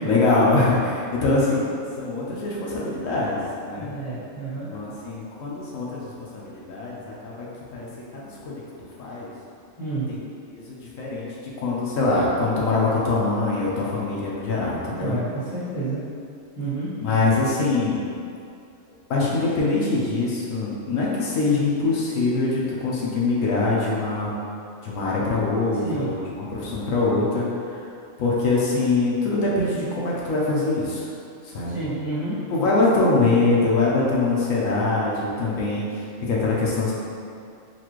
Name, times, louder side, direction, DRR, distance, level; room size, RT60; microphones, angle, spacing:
voice 1, 0.0-3.9 4.7-7.5 7.7-8.5 9.0-9.3 10.1-10.2 10.5-15.2 17.0-18.0 19.1-24.3 24.8-27.8 28.2-31.1 31.4-31.8 32.5-36.9, left 3 dB, 75° left, -5 dB, 1.1 m, -23 dB
voice 2, 3.7-4.7 9.8-10.1 15.0-16.0 16.5-16.9 25.8-26.1 31.7-32.4, right 3 dB, 25° right, -13 dB, 1.2 m, -30 dB
4.2 x 2.5 x 2.9 m, 2.4 s
omnidirectional pair, 1.4 m